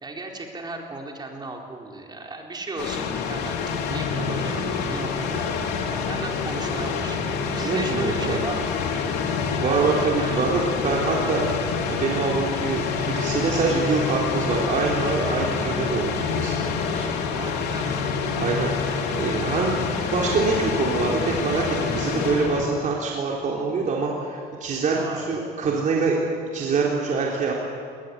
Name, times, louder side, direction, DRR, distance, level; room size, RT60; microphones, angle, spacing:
voice 1, 0.0-3.6 3.9-5.7 6.1-7.2 7.6-8.8 9.6-10.4 17.3-18.2 24.9-26.0, right 2 dB, 25° right, 1 dB, 4.0 m, -35 dB
sound 1, 2.8-22.7, left 5 dB, 90° left, 2.7 m, -27 dB
voice 2, 7.6-8.4 9.5-11.4 11.9-16.6 16.9-17.1 18.4-26.2 26.5-27.5, right 4 dB, 50° right, -2 dB, 3.8 m, -25 dB
20.5 x 20.0 x 9.8 m, 2.3 s
cardioid pair, 110°, 17 cm